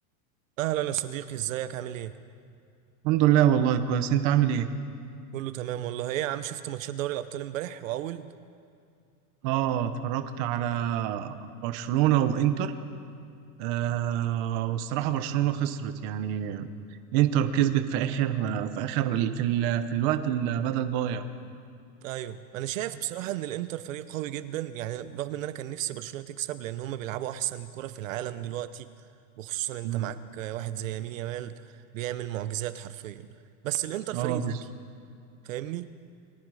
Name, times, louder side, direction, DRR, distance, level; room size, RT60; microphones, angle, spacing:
voice 1, 0.6-2.1 5.3-8.3 22.0-28.9 29.4-33.4 33.6-34.6 35.4-35.9, right 13 dB, 60° right, 13 dB, 0.9 m, -33 dB
voice 2, 3.0-4.7 9.4-11.4 11.6-12.7 13.6-16.7 17.1-21.2 29.8-30.1 34.1-34.6, right 11 dB, 30° right, 9 dB, 0.9 m, -26 dB
30.0 x 21.0 x 4.9 m, 2.3 s
supercardioid pair, 180°, 45 cm